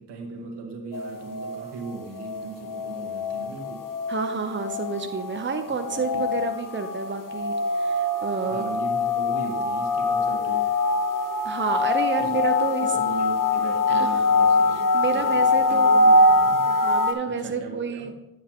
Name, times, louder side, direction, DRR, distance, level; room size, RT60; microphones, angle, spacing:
voice 1, 0.0-3.8 5.9-6.5 8.4-10.8 12.2-16.7 17.3-18.1, right 4 dB, 80° right, 1 dB, 1.8 m, -38 dB
sound 1, 0.9-17.1, left 2 dB, 50° left, 1.2 m, -23 dB
voice 2, 4.1-8.8 11.4-12.9 13.9-14.1 14.9-15.9 16.6-18.1, right 4 dB, 30° right, 6 dB, 0.9 m, -29 dB
9.2 x 8.2 x 3.1 m, 0.87 s
supercardioid pair, 50°, 41 cm